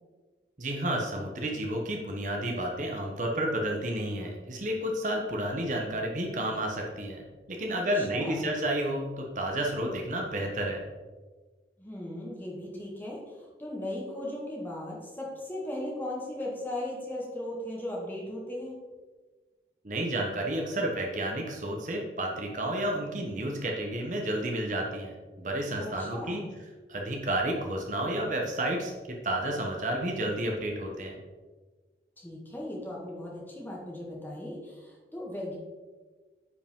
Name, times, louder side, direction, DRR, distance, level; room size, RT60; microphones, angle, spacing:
voice 1, 0.6-10.8 19.8-26.4 26.9-28.9 29.2-31.2, right 1 dB, 45° right, 0 dB, 1.0 m, -31 dB
voice 2, 7.7-8.6 11.8-18.8 25.8-26.5 32.2-35.6, left 1 dB, 10° left, -3 dB, 1.7 m, -37 dB
10.0 x 5.0 x 3.7 m, 1.3 s
head